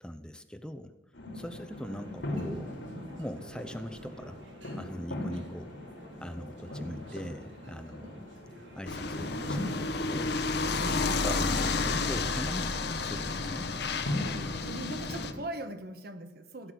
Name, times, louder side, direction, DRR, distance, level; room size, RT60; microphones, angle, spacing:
voice 1, 0.0-0.9 1.3-2.8 3.2-4.4 4.7-5.7 6.2-8.3 8.7-9.6 10.1-10.4 10.8-13.7, equal, 5° left, 0.6 m, -41 dB
sound 1, 1.1-15.4, left 1 dB, 90° left, 3.0 m, -40 dB
sound 2, 1.7-14.0, right 1 dB, 90° right, 2.9 m, -51 dB
sound 3, 8.9-15.3, left 3 dB, 65° left, 1.1 m, -31 dB
voice 2, 9.2-9.7 14.6-16.7, right 1 dB, 55° right, 1.3 m, -41 dB
16.0 x 6.0 x 9.8 m
head